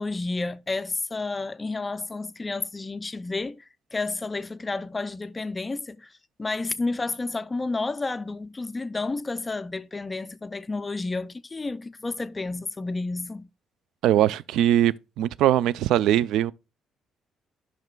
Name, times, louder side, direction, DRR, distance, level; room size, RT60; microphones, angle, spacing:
voice 1, 0.0-13.5, left 3 dB, 20° left, 0.4 m, -31 dB
voice 2, 14.0-16.5, right 12 dB, 80° right, 0.3 m, -21 dB
10.5 x 5.7 x 2.2 m
cardioid pair, 125°, 0 cm